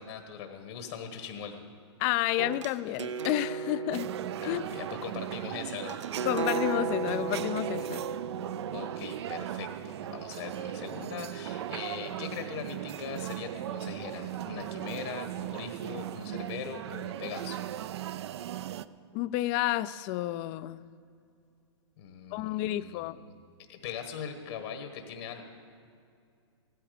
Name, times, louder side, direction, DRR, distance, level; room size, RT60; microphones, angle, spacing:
voice 1, 0.0-1.6 4.4-6.0 8.7-17.6 22.0-23.3 23.7-25.4, left 7 dB, 65° left, 6 dB, 1.5 m, -41 dB
voice 2, 2.0-4.1 4.4-4.7 6.2-8.0 19.1-20.9 22.3-23.2, left 15 dB, 35° left, 16 dB, 0.4 m, -30 dB
sound 1, 2.4-10.1, right 6 dB, 85° right, 0.9 m, -36 dB
sound 2, 3.9-18.9, right 12 dB, 65° right, 0.5 m, -38 dB
15.5 x 13.5 x 5.1 m, 2.4 s
hypercardioid pair, 135°, 15 cm